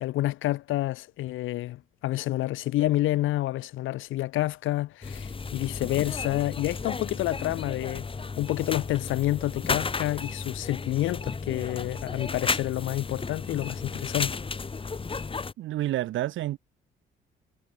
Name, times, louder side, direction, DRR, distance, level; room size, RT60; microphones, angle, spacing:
voice 1, 0.0-8.1 8.4-14.4, left 16 dB, 85° left, 1.1 m, -29 dB
sound 1, 5.0-15.5, left 4 dB, 25° left, 1.7 m, -33 dB
voice 2, 15.6-16.6, right 14 dB, 75° right, 0.9 m, -29 dB
cardioid pair, 90°, 20 cm